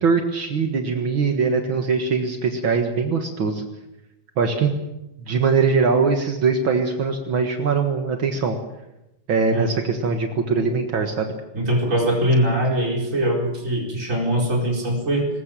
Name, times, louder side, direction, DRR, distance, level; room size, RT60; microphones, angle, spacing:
voice 1, 0.0-3.6 4.4-4.7 5.3-8.6 9.3-11.3, right 5 dB, 65° right, 4 dB, 2.4 m, -21 dB
voice 2, 11.5-15.3, right 1 dB, 35° right, 0 dB, 4.8 m, -22 dB
21.5 x 20.5 x 7.5 m, 0.94 s
omnidirectional pair, 2.4 m